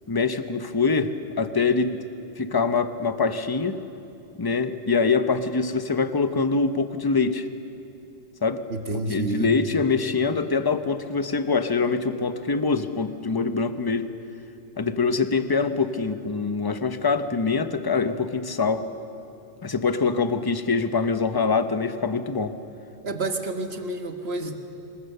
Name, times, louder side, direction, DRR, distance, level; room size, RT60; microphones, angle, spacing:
voice 1, 0.1-2.0 2.4-3.8 4.3-7.5 8.4-8.6 9.1-14.1 14.8-18.9 19.6-22.5, left 4 dB, 20° left, 9 dB, 0.7 m, -24 dB
voice 2, 8.7-9.5 23.0-24.6, right 2 dB, 50° right, 5 dB, 1.8 m, -29 dB
26.0 x 22.0 x 6.8 m, 2.8 s
omnidirectional pair, 1.3 m